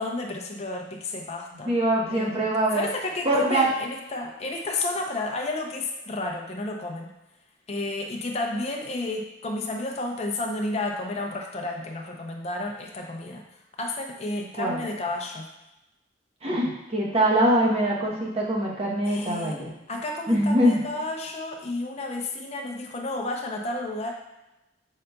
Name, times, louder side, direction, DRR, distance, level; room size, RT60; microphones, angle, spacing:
voice 1, 0.0-1.7 2.1-2.5 2.7-7.1 7.7-13.4 13.8-15.5 19.0-19.6 19.9-24.1, left 2 dB, 35° left, 1 dB, 0.5 m, -31 dB
voice 2, 1.7-2.9 3.2-3.7 14.6-14.8 16.4-19.7 20.3-20.8, right 1 dB, 35° right, -4 dB, 0.9 m, -23 dB
5.5 x 3.8 x 2.2 m, 0.94 s
head